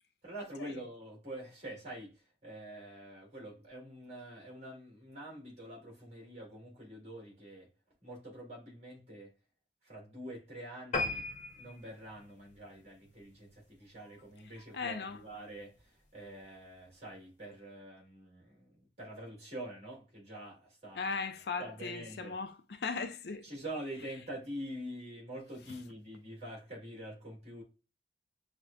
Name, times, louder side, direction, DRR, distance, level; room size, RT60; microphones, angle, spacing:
voice 1, 0.2-2.1 2.4-7.7 8.0-9.3 9.8-11.3 11.5-18.7 19.0-21.1 21.6-22.3 23.4-27.6, right 1 dB, 35° right, 2.0 m, -46 dB
sound 1, 10.9-13.7 14.2-14.4 14.8-14.9 15.2-15.3 15.5-15.6, left 3 dB, 40° left, 0.9 m, -38 dB
voice 2, 14.7-15.2 21.0-23.5, left 4 dB, 70° left, 0.4 m, -38 dB
6.1 x 2.2 x 2.3 m
head